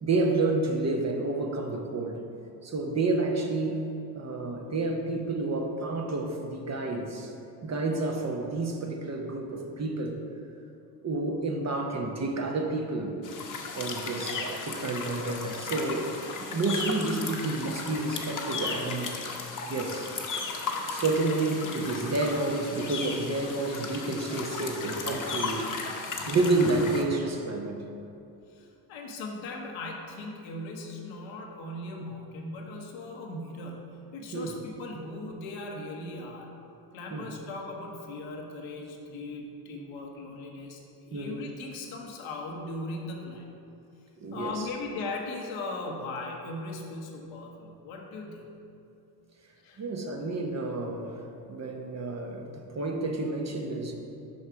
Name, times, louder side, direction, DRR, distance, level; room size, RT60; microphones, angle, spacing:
voice 1, 0.0-2.2 2.6-3.8 4.1-7.3 7.6-10.2 11.0-13.2 13.7-16.1 16.5-19.1 19.7-20.1 20.9-25.7 26.3-27.9 34.3-34.6 37.1-37.3 41.1-41.4 44.2-44.7 49.8-51.2 51.5-53.9, right 2 dB, 35° right, 3 dB, 0.9 m, -29 dB
sound 1, 13.2-27.0, left 4 dB, 40° left, 1.1 m, -35 dB
voice 2, 28.5-36.5 36.9-43.5 44.3-48.4 49.6-49.8, left 2 dB, 75° left, 0 dB, 1.1 m, -38 dB
5.6 x 5.4 x 4.6 m, 2.8 s
hypercardioid pair, 55°, 48 cm